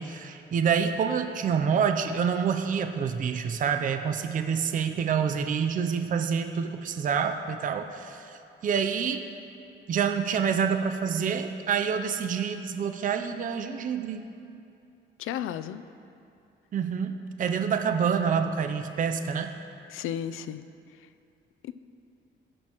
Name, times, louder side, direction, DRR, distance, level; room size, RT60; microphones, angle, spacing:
voice 1, 0.0-9.3 9.9-14.2 16.7-19.5, right 6 dB, 40° right, 7 dB, 0.5 m, -27 dB
voice 2, 15.2-15.8 19.9-20.7 21.6-21.7, left 10 dB, 85° left, 13 dB, 0.4 m, -33 dB
16.0 x 6.3 x 3.0 m, 2.5 s
cardioid pair, 115°, 21 cm